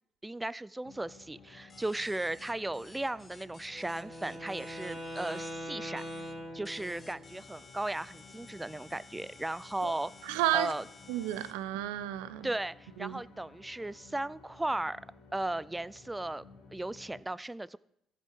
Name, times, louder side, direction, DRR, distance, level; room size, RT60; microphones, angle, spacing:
voice 1, 0.2-6.0 6.5-10.1 10.5-10.8 12.4-15.0 15.3-16.4 16.7-17.8, right 2 dB, 15° right, 0.4 m, -36 dB
sound 1, 0.8-17.2, left 4 dB, 75° left, 2.0 m, -56 dB
sound 2, 1.7-5.5 6.0-6.3 6.6-11.5, left 4 dB, 35° left, 1.7 m, -55 dB
Wind instrument woodwind instrument, 3.7-7.3, equal, 30° right, 2.9 m, -42 dB
voice 2, 10.2-10.7 11.1-12.5 13.0-13.2, right 14 dB, 80° right, 0.5 m, -32 dB
14.5 x 5.9 x 4.8 m
hypercardioid pair, 55°, 0 cm